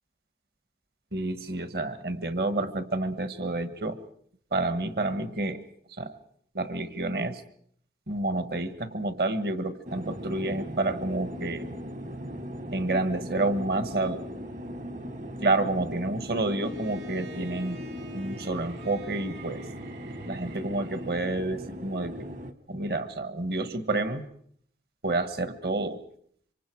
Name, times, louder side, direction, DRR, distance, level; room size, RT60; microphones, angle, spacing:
voice 1, 1.1-4.0 4.5-5.6 6.0-6.2 6.5-7.4 8.1-11.6 12.7-14.3 15.4-17.8 18.1-19.6 20.2-22.3 22.7-24.2 25.0-26.0, right 2 dB, 60° right, 10 dB, 1.5 m, -29 dB
sound 1, 9.9-22.5, equal, 45° right, 1.1 m, -39 dB
Bowed string instrument, 16.6-21.5, equal, 80° right, 4.4 m, -48 dB
27.0 x 25.0 x 4.7 m, 0.63 s
head